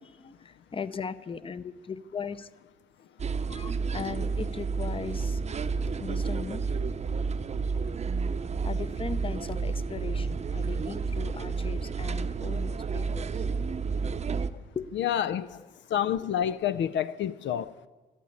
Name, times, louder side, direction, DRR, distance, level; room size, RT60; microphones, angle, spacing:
voice 1, 0.0-2.5 3.5-6.8 7.5-7.6 8.6-13.4 14.7-15.1 15.5-15.7, left 6 dB, 25° left, 0.7 m, -38 dB
sound 1, 3.2-14.5, right 5 dB, 35° right, 0.7 m, -31 dB
voice 2, 15.0-15.6 15.9-17.7, left 10 dB, 65° left, 0.5 m, -28 dB
13.0 x 12.0 x 8.6 m
cardioid pair, 90°, 20 cm